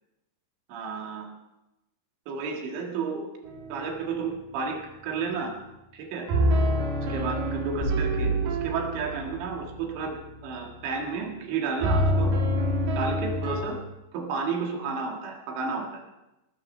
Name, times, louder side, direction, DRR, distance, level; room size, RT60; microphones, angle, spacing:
voice 1, 0.7-1.3 2.3-3.3 3.7-4.8 5.0-5.5 5.9-6.3 7.1-10.2 10.4-12.3 13.0-13.8 14.1-16.0, right 5 dB, 75° right, 2 dB, 4.1 m, -32 dB
sound 1, 3.5-4.0 6.3-11.1 11.8-13.6, equal, 60° right, 4.1 m, -27 dB
sound 2, 7.8-10.0, right 3 dB, 85° left, 8.1 m, -31 dB
19.5 x 13.5 x 4.4 m, 0.95 s
omnidirectional pair, 5.3 m